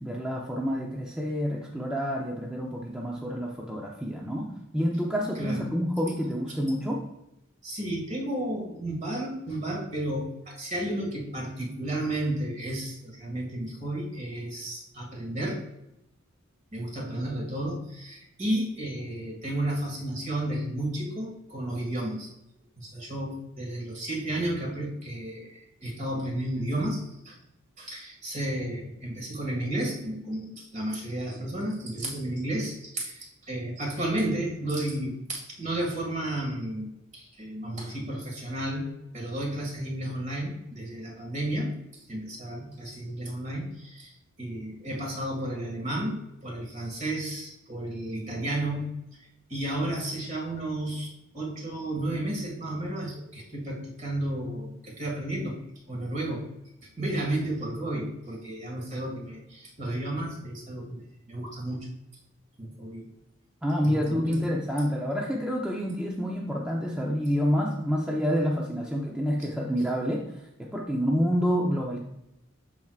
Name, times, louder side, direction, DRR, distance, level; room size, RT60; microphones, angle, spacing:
voice 1, 0.0-7.0 63.6-72.0, equal, 5° right, -2 dB, 0.6 m, -28 dB
voice 2, 5.4-5.7 7.6-15.7 16.7-22.3 22.8-27.4 27.8-49.2 49.5-55.6 55.9-56.5 57.0-61.9 62.6-63.1 63.8-64.5, right 1 dB, 35° right, -1 dB, 2.1 m, -32 dB
13.0 x 4.6 x 2.4 m, 0.86 s
head